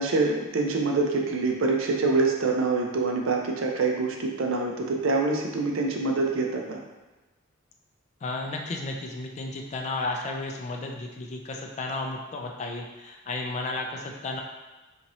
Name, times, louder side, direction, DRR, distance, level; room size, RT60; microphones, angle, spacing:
voice 1, 0.0-6.8, right 3 dB, 65° right, 1 dB, 0.5 m, -25 dB
voice 2, 8.2-14.4, left 2 dB, 35° left, 1 dB, 0.3 m, -33 dB
2.8 x 2.6 x 2.9 m, 1.1 s
head